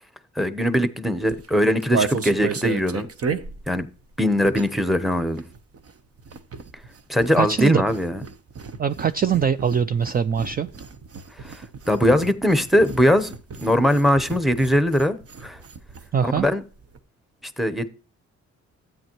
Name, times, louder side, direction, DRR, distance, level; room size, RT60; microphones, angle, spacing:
voice 1, 0.4-3.1 3.7-3.9 4.2-5.4 7.1-8.2 11.4-11.6 11.9-13.3 13.6-15.6 16.2-16.6 17.6-17.9, equal, ahead, 0.9 m, -21 dB
sound 1, 1.2-4.9 5.2-16.1 16.4-16.5 16.7-17.0, right 5 dB, 50° right, 1.0 m, -34 dB
voice 2, 7.4-7.8 8.8-10.7 16.1-16.5, right 7 dB, 30° right, 0.4 m, -22 dB
12.5 x 9.0 x 3.1 m
cardioid pair, 90°, 29 cm